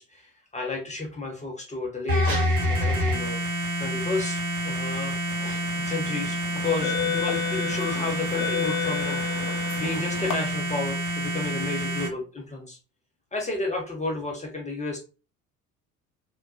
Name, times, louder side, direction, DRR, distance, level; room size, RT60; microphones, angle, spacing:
voice 1, 0.0-3.4 3.8-9.2 9.8-12.8 13.3-15.0, left 3 dB, 15° left, 0 dB, 0.7 m, -32 dB
sound 1, 2.1-12.1, equal, 80° right, 1.1 m, -28 dB
sound 2, 5.5-5.8 6.5-10.3, left 8 dB, 50° left, 0.8 m, -31 dB
3.5 x 2.2 x 2.5 m, 0.33 s
figure-of-eight pair, 60°, 43 cm